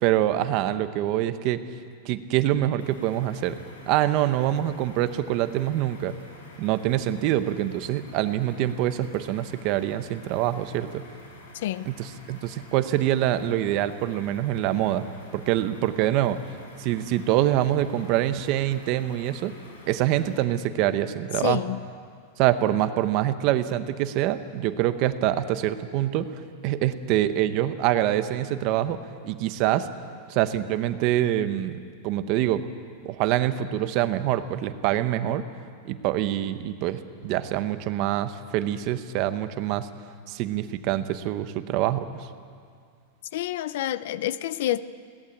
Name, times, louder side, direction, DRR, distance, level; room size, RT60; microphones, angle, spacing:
voice 1, 0.0-1.6 2.0-3.6 3.9-6.2 6.6-11.0 11.9-15.1 15.3-16.4 16.8-19.5 19.9-21.6 22.4-29.9 30.3-32.6 33.0-35.5 35.8-39.9 40.3-42.3, right 13 dB, 35° right, 11 dB, 0.9 m, -25 dB
snowmobile idle nearby crispy, 2.8-20.4, left 2 dB, 80° left, 6.1 m, -48 dB
voice 2, 11.5-11.9 21.4-21.8 43.3-44.8, left 13 dB, 55° left, 16 dB, 0.6 m, -28 dB
21.0 x 17.5 x 8.5 m, 2.1 s
supercardioid pair, 175°, 0 cm